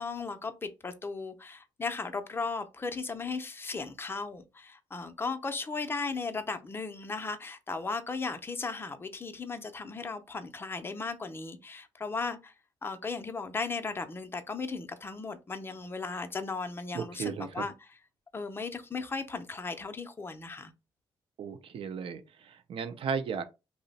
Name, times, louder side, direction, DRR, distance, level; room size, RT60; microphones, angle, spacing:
voice 1, 0.0-12.5 12.8-17.7 18.3-20.7, left 4 dB, 20° left, 0.5 m, -36 dB
voice 2, 16.9-17.7 21.4-23.4, right 6 dB, 60° right, 0.5 m, -35 dB
2.7 x 2.0 x 3.9 m
cardioid pair, 100°, 10 cm